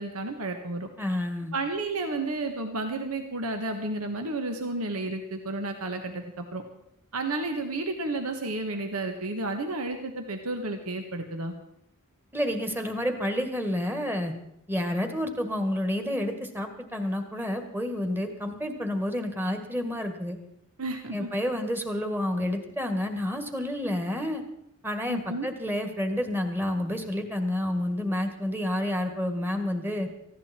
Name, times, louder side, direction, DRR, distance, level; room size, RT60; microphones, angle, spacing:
voice 1, 0.0-0.9 1.5-6.6 7.1-11.5 20.8-21.3 25.1-25.5, right 2 dB, 80° right, 6 dB, 1.5 m, -32 dB
voice 2, 1.0-1.5 12.3-14.3 14.7-20.4 21.1-24.4 24.8-30.1, left 1 dB, 10° right, 6 dB, 1.9 m, -29 dB
18.5 x 15.0 x 4.4 m, 0.78 s
head